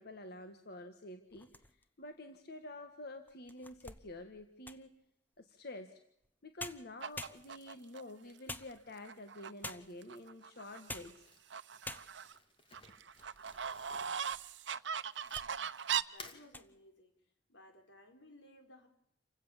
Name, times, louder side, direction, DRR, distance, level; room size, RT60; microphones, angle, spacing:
voice 1, 0.0-5.0 5.4-6.0 6.4-11.3, left 1 dB, 60° left, 7 dB, 1.6 m, -49 dB
sound 1, 1.3-2.0 2.6-2.7 3.3-5.0 6.2-6.3 6.6-7.8 8.5-9.2 9.6-10.1 10.7-11.2 11.5-11.6 11.8-12.4 13.0-13.8 14.1-14.2 14.9-15.5 15.9-16.1 16.4-16.7, left 2 dB, 10° left, 1.0 m, -48 dB
sound 2, 7.0-8.0 8.6-8.7 9.0-9.7 10.0-11.1 11.5-12.4 12.7-16.0, right 8 dB, 70° right, 0.9 m, -39 dB
Crumpling crinkling, 11.1-15.7 16.0-16.4, left 3 dB, 30° left, 2.6 m, -56 dB
voice 2, 16.1-17.1 17.5-18.9, left 1 dB, 85° left, 5 dB, 4.6 m, -59 dB
29.0 x 16.5 x 7.3 m, 0.77 s
head